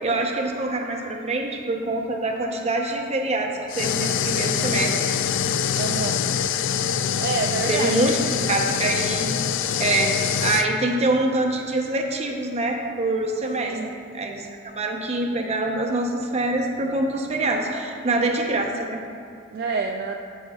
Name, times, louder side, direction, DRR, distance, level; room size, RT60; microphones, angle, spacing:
voice 1, 0.0-5.0 7.7-8.2 8.5-9.4 9.8-10.1 10.4-13.8 14.1-19.0, right 2 dB, 35° right, 1 dB, 0.8 m, -25 dB
sound 1, 3.7-10.7, left 8 dB, 65° left, 0.3 m, -24 dB
voice 2, 5.7-6.2 7.2-8.5 13.6-13.9 19.5-20.2, right 4 dB, 50° right, 1 dB, 0.4 m, -28 dB
14.5 x 5.4 x 2.4 m, 2.3 s
head